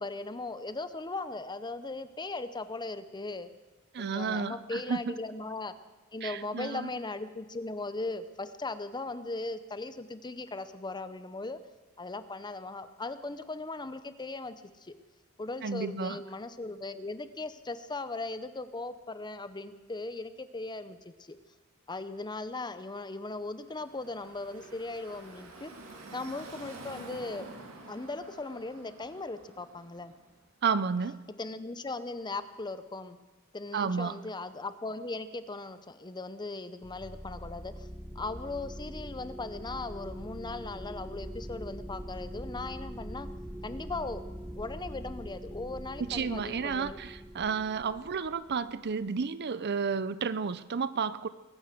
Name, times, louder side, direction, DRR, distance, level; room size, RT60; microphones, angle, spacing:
voice 1, 0.0-3.5 4.0-5.7 6.1-11.6 12.0-14.9 15.4-21.4 21.9-25.7 26.1-27.5 27.9-30.1 31.4-33.2 33.5-37.9 38.1-43.3 43.6-44.2 44.6-47.0, left 3 dB, 20° left, 12 dB, 0.7 m, -38 dB
voice 2, 3.9-5.1 6.2-6.9 15.6-16.2 30.6-31.2 33.7-34.2 46.0-51.3, right 5 dB, 50° right, 15 dB, 0.6 m, -32 dB
Car passing by / Traffic noise roadway noise, 23.5-30.4, right 2 dB, 70° right, 2.5 m, -49 dB
sound 1, 36.8-49.1, equal, 5° right, 1.1 m, -43 dB
22.0 x 9.5 x 6.7 m, 1.2 s
head